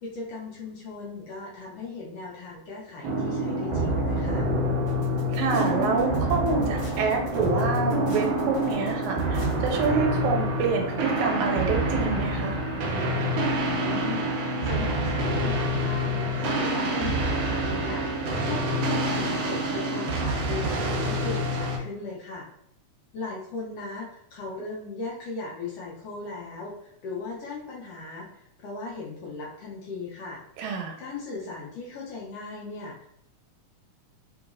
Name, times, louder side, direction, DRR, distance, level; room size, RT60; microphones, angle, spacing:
voice 1, 0.0-4.4 13.6-22.5 23.1-28.3 28.6-30.4 31.0-33.1, left 3 dB, 75° left, -3 dB, 1.5 m, -37 dB
sound 1, 3.0-21.8, right 1 dB, 70° right, 1.6 m, -27 dB
sound 2, 4.9-9.9, left 2 dB, 55° left, 1.7 m, -45 dB
voice 2, 5.3-12.6 30.6-31.0, right 5 dB, 85° right, 2 dB, 2.1 m, -27 dB
4.0 x 3.8 x 2.4 m, 0.77 s
omnidirectional pair, 3.4 m